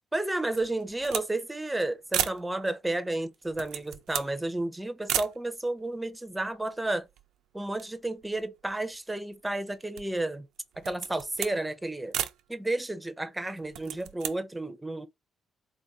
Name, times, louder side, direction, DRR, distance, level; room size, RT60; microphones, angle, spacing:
voice 1, 0.1-7.0 7.5-10.5 10.8-12.2 12.5-15.1, right 2 dB, 10° right, 0.7 m, -32 dB
sound 1, 0.5-1.3 1.6-1.7 2.1-2.5 3.3-4.4 5.1-5.4 6.1-6.2 6.4-7.4 7.7-9.0 9.5-10.2 10.7-11.6 12.1-12.4 13.6-14.4, right 11 dB, 90° right, 0.5 m, -34 dB
3.8 x 2.6 x 3.5 m
cardioid pair, 90°, 0 cm